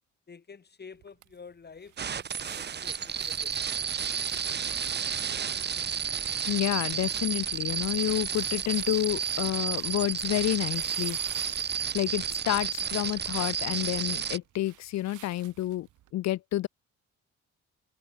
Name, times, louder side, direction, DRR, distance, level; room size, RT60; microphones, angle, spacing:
voice 1, 0.3-3.9 4.4-4.9, left 5 dB, 35° left, 2.2 m, -50 dB
sound 1, 0.9-16.1, right 15 dB, 80° right, 1.3 m, -53 dB
sound 2, 2.0-14.4, right 7 dB, 35° right, 0.8 m, -31 dB
voice 2, 6.5-11.2 11.9-15.9 16.1-16.7, left 15 dB, 60° left, 0.5 m, -29 dB
cardioid pair, 90°, 30 cm